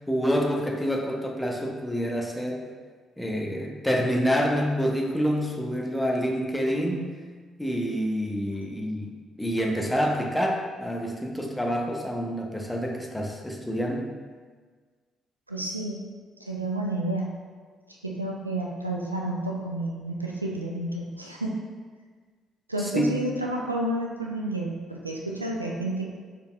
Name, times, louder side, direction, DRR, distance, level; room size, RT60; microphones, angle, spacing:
voice 1, 0.0-2.7 3.2-7.2 7.6-9.1 9.4-14.1 23.0-23.2, equal, 10° left, 1 dB, 0.7 m, -27 dB
voice 2, 15.5-16.1 16.4-17.3 18.0-21.6 22.7-26.1, right 1 dB, 90° right, -1 dB, 0.3 m, -30 dB
5.3 x 4.0 x 2.2 m, 1.5 s
figure-of-eight pair, 45°, 0 cm